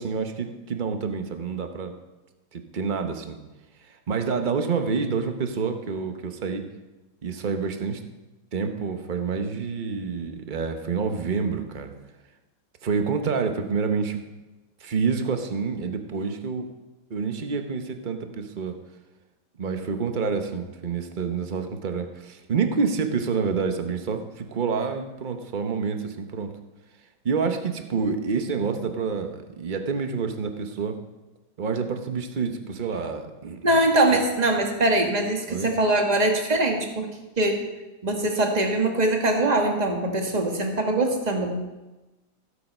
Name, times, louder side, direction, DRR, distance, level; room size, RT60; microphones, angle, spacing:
voice 1, 0.0-2.0 2.5-3.4 3.9-6.6 7.2-8.0 8.5-11.9 12.8-14.2 14.8-16.7 17.1-18.7 19.6-26.5 27.2-31.0 31.6-33.7 34.1-34.2 35.5-35.7, right 5 dB, 40° right, 6 dB, 0.7 m, -28 dB
voice 2, 33.6-37.1 37.4-37.6 38.0-41.5, right 2 dB, 20° right, 2 dB, 1.6 m, -22 dB
15.0 x 8.2 x 5.5 m, 1.1 s
omnidirectional pair, 2.2 m